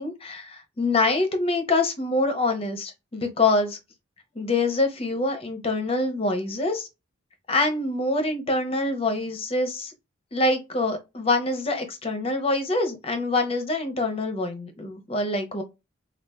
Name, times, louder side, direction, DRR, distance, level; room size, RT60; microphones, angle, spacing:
voice 1, 0.0-3.8 4.4-6.9 7.5-9.9 10.3-15.6, left 2 dB, 30° left, 0.7 m, -25 dB
4.6 x 2.3 x 2.2 m
head